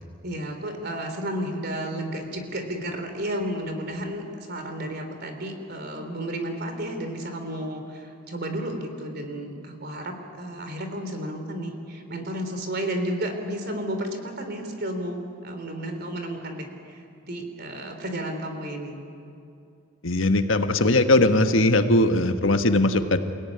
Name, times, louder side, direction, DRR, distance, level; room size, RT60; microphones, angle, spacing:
voice 1, 0.2-19.0, right 1 dB, 50° right, 6 dB, 3.6 m, -32 dB
voice 2, 20.0-23.2, left 2 dB, 75° left, 7 dB, 1.4 m, -20 dB
29.0 x 17.5 x 9.9 m, 2.5 s
head